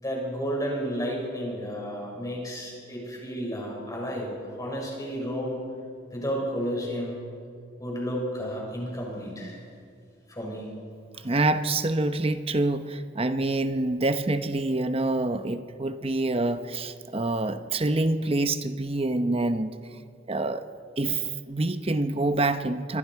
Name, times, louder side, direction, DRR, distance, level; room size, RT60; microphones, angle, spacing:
voice 1, 0.0-4.3 4.6-5.6 6.1-7.1 7.8-9.6 10.3-10.7, equal, 20° left, -2 dB, 5.8 m, -32 dB
voice 2, 11.2-19.7 20.3-20.7 21.0-23.0, right 2 dB, 30° right, 10 dB, 0.8 m, -26 dB
26.5 x 22.0 x 4.7 m, 2.3 s
head